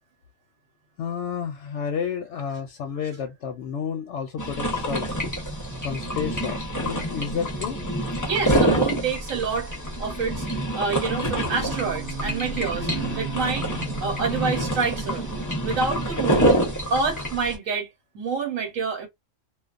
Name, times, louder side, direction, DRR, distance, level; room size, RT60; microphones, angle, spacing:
voice 1, 1.0-5.2 5.8-7.8, left 7 dB, 70° left, 0.8 m, -31 dB
sound 1, 4.4-17.6, right 1 dB, 20° left, 0.5 m, -27 dB
voice 2, 8.2-9.7 10.0-10.5 10.7-12.9 13.1-13.7 14.0-15.2 15.6-16.6 16.9-17.9 18.1-19.1, right 5 dB, 85° right, 1.3 m, -27 dB
sound 2, 11.1-15.6, right 5 dB, 70° right, 0.9 m, -36 dB
2.3 x 2.2 x 2.4 m
omnidirectional pair, 1.4 m